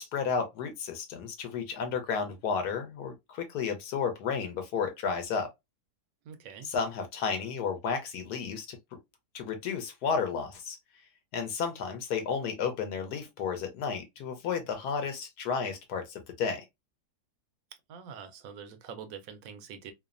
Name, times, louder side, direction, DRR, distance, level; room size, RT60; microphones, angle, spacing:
voice 1, 0.0-5.5 6.6-8.7 9.3-10.8 11.3-16.6, left 6 dB, 75° left, 1.2 m, -32 dB
voice 2, 6.3-6.7 17.9-19.9, right 7 dB, 70° right, 0.9 m, -45 dB
3.1 x 2.0 x 2.4 m
omnidirectional pair, 1.7 m